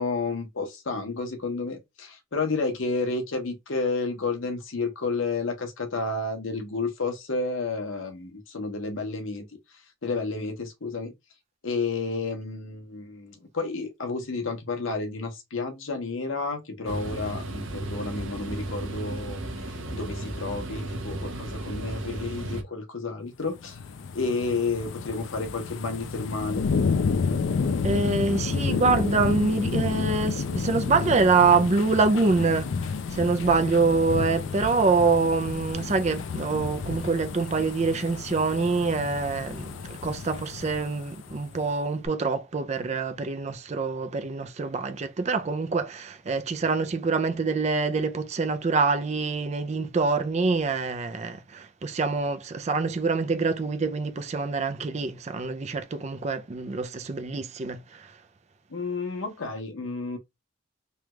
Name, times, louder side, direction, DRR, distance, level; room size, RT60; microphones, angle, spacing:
voice 1, 0.0-9.5 10.0-11.1 11.6-19.4 19.7-23.8 24.1-26.6 58.7-60.2, left 3 dB, 85° left, 0.9 m, -31 dB
sound 1, 16.9-22.6, right 1 dB, 85° right, 0.8 m, -34 dB
sound 2, 23.5-41.6 42.1-42.2, left 5 dB, 70° left, 0.4 m, -30 dB
voice 2, 27.8-58.1, right 4 dB, 35° right, 0.4 m, -25 dB
3.3 x 2.3 x 3.0 m
head